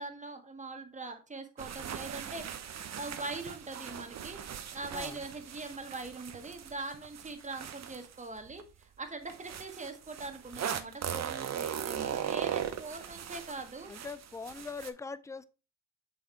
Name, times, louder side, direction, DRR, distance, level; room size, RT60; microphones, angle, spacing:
voice 1, 0.0-4.4 4.7-13.9, right 3 dB, 15° right, 1.5 m, -42 dB
sound 1, 1.6-8.6 9.3-14.9, right 9 dB, 40° right, 0.8 m, -39 dB
voice 2, 4.9-5.2 12.7-12.9 13.9-15.4, left 4 dB, 10° left, 0.4 m, -42 dB
6.7 x 3.6 x 4.4 m
hypercardioid pair, 60°, 42 cm